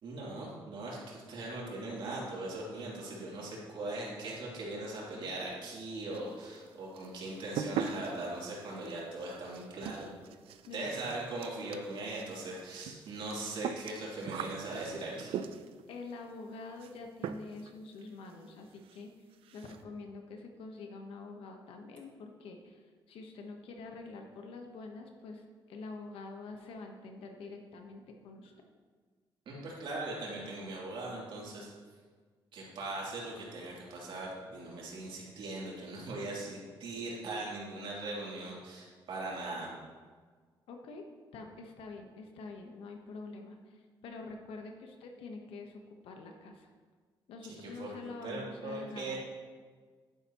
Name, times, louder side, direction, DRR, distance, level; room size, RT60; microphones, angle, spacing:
voice 1, 0.0-10.1 10.7-15.4 29.4-31.7 32.5-39.7 47.6-49.2, right 2 dB, 65° right, -5 dB, 3.0 m, -40 dB
sound 1, 6.1-6.7 7.0-15.9 16.8-17.0 17.2-17.7 18.0-18.1 18.5-18.6 18.8-19.0 19.3-19.8, right 8 dB, 90° right, 0.5 m, -41 dB
voice 2, 15.9-19.1 19.5-28.5 40.7-41.0 41.3-46.7 47.3-49.2, left 3 dB, 85° left, 3 dB, 1.1 m, -46 dB
10.5 x 9.9 x 3.0 m, 1.5 s
cardioid pair, 135°, 9 cm